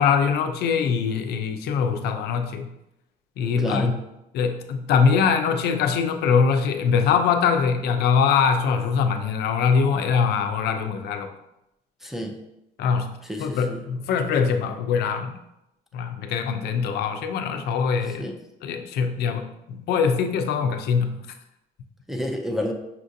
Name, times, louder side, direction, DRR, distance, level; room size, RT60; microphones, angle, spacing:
voice 1, 0.0-2.7 3.4-4.0 4.3-11.3 12.8-15.4 15.9-18.4 18.6-21.2, left 6 dB, 75° left, 6 dB, 0.5 m, -23 dB
voice 2, 3.6-3.9 12.0-12.3 13.3-13.8 18.2-18.3 22.1-22.7, equal, ahead, 1 dB, 0.5 m, -29 dB
5.7 x 2.5 x 2.6 m, 0.87 s
cardioid pair, 110°, 17 cm